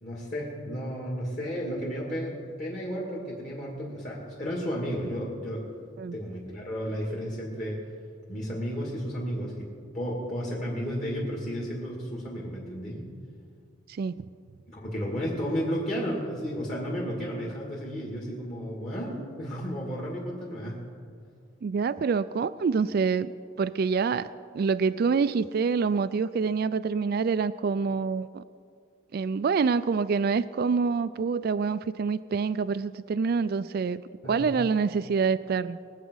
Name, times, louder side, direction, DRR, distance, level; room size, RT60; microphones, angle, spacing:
voice 1, 0.0-5.7 6.1-7.8 8.3-9.7 9.9-13.1 14.7-20.8 34.2-34.4, equal, 35° left, -5 dB, 2.4 m, -33 dB
voice 2, 21.6-23.3 23.6-24.3 24.5-28.4 29.1-34.0 34.3-35.8, right 5 dB, 50° right, 13 dB, 0.3 m, -26 dB
22.0 x 8.2 x 6.4 m, 2.2 s
head